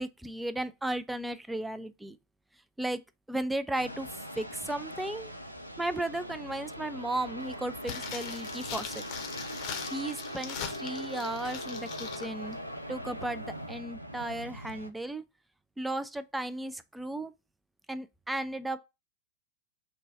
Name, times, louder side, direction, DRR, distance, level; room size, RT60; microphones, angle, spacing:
voice 1, 0.0-2.2 2.8-3.0 3.3-4.1 4.4-5.3 5.8-9.0 9.9-12.6 12.9-15.2 15.8-17.3 17.9-18.8, right 1 dB, 5° right, 0.3 m, -35 dB
sound 1, 3.7-14.9, equal, 90° right, 0.4 m, -41 dB
sound 2, 7.8-12.3 12.5-12.6, left 8 dB, 40° left, 0.7 m, -41 dB
3.2 x 2.2 x 4.0 m
figure-of-eight pair, 90°, 0 cm